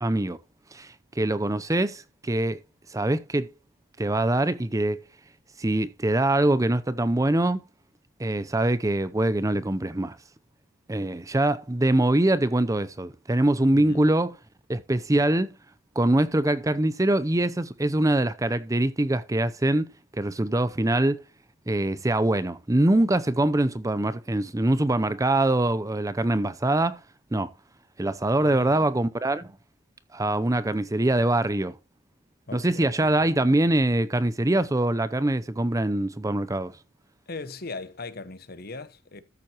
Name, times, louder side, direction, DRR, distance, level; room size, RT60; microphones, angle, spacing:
voice 1, 0.0-0.4 0.7-2.6 2.9-3.5 4.0-5.0 5.6-7.6 8.2-10.2 10.9-14.3 14.7-15.5 16.0-21.2 21.7-27.0 27.3-27.5 28.0-29.5 30.1-31.7 32.5-36.7, right 1 dB, 15° right, 0.6 m, -23 dB
voice 2, 13.7-14.1 28.4-28.9 32.5-33.1 37.3-39.2, left 3 dB, 50° left, 1.2 m, -39 dB
13.5 x 7.5 x 3.0 m
head